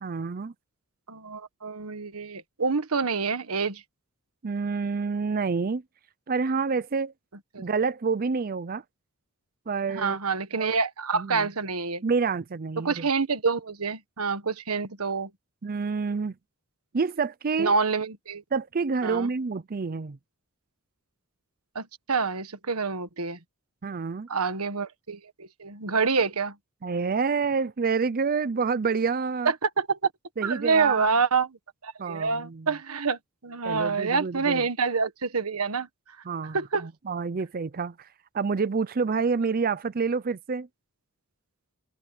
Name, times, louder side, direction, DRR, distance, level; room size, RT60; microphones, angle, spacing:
voice 1, 0.0-0.5 4.4-5.8 6.3-7.1 7.6-8.8 9.7-10.2 10.6-10.7 11.1-11.5 12.0-13.1 15.6-16.3 16.9-17.7 18.5-20.2 23.8-24.3 26.8-29.5 30.4-31.1 32.0-32.7 33.6-34.6 36.3-38.1 38.3-40.7, right 5 dB, 40° right, 0.5 m, -28 dB
voice 2, 1.1-3.8 7.5-7.6 9.9-12.0 12.8-15.3 17.6-18.4 19.0-19.3 21.7-23.4 24.3-26.5 29.4-30.1 30.4-31.6 31.8-35.9 36.5-36.9, right 4 dB, 85° right, 1.5 m, -27 dB
open air
head